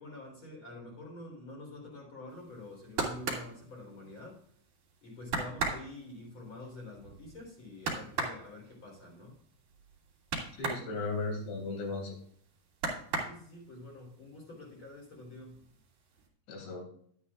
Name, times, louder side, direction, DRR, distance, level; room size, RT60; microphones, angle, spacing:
voice 1, 0.0-4.4 5.0-9.4 13.2-15.6, left 2 dB, 30° left, -2 dB, 3.7 m, -47 dB
sound 1, 2.5-4.5 4.9-5.0 5.3-10.9 11.2-12.3 12.7-13.8 14.2-14.9 15.1-15.8 16.2-16.3, right 4 dB, 50° right, 3.5 m, -36 dB
voice 2, 10.6-12.1 16.5-16.8, left 3 dB, 80° left, 1 dB, 5.2 m, -36 dB
12.5 x 9.8 x 2.4 m, 0.62 s
omnidirectional pair, 5.1 m